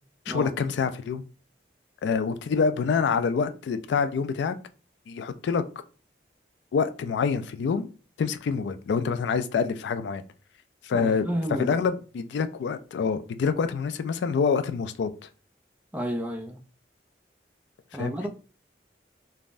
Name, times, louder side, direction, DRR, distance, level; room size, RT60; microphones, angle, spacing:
voice 1, 0.3-1.2 2.0-4.6 5.1-5.6 6.7-7.9 8.2-10.2 10.8-11.3 11.6-15.3 17.9-18.1, left 5 dB, 80° left, 0.3 m, -26 dB
voice 2, 10.9-11.7 15.9-16.6 17.9-18.3, equal, 10° right, 0.3 m, -31 dB
3.3 x 2.1 x 2.4 m
head